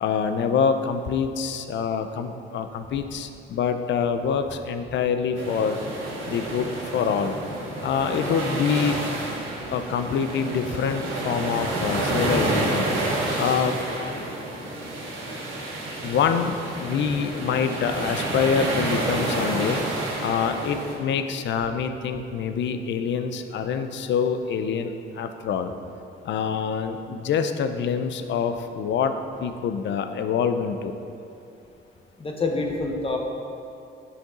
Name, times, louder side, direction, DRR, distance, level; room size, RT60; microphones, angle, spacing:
voice 1, 0.0-5.8 6.3-7.3 7.8-9.0 9.7-12.9 13.4-13.8 16.0-19.8 20.2-25.7 26.2-29.1 29.4-30.9, left 6 dB, 65° left, 8 dB, 0.5 m, -25 dB
sound 1, 5.4-20.9, right 1 dB, 80° right, 1.7 m, -29 dB
voice 2, 32.2-33.2, left 3 dB, 30° left, 1 dB, 1.0 m, -26 dB
8.0 x 5.9 x 3.8 m, 2.6 s
cardioid pair, 90°, 20 cm